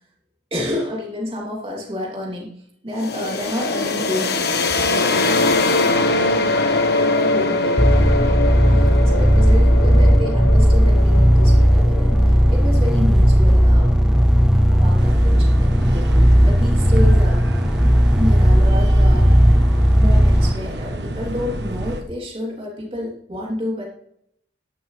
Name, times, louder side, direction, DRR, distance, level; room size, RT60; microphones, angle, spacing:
voice 1, 0.5-2.5 2.8-6.5 6.7-13.9 14.5-17.4 18.1-19.3 20.0-23.8, left 1 dB, 30° right, -3 dB, 3.0 m, -30 dB
sound 1, 3.0-14.6, left 2 dB, 60° left, 1.2 m, -22 dB
sound 2, 7.8-20.5, equal, 5° right, 0.4 m, -14 dB
sound 3, 15.0-22.0, right 1 dB, 65° right, 1.3 m, -29 dB
12.0 x 11.0 x 3.3 m, 0.71 s
head